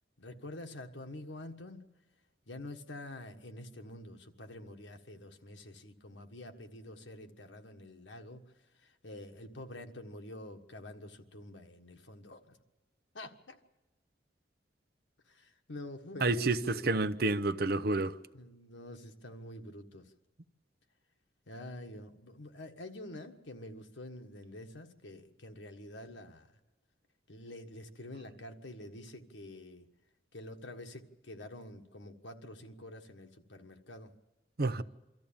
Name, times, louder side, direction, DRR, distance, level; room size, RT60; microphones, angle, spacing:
voice 1, 0.2-1.8 2.5-8.4 8.8-12.6 13.1-13.6 15.3-16.9 18.3-20.1 21.5-26.5 27.3-29.9 30.3-34.1, left 1 dB, 90° left, 1.5 m, -47 dB
voice 2, 16.2-18.2 34.6-34.8, right 2 dB, 55° right, 0.7 m, -29 dB
24.5 x 13.5 x 8.8 m
head